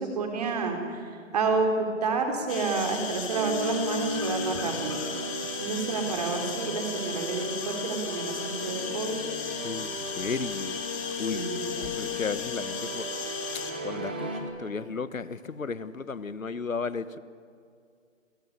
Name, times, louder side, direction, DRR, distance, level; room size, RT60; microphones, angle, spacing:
voice 1, 0.0-5.0 5.6-9.2 11.3-12.0, right 4 dB, 30° right, 4 dB, 3.6 m, -29 dB
sound 1, 2.5-13.7, left 7 dB, 25° left, 3.6 m, -37 dB
sound 2, 3.3-14.4, left 1 dB, 10° right, 0.7 m, -36 dB
voice 2, 9.6-10.8 11.2-13.1 13.5-17.2, left 5 dB, 85° left, 15 dB, 1.3 m, -34 dB
28.5 x 17.5 x 9.5 m, 2.3 s
figure-of-eight pair, 160°, 39 cm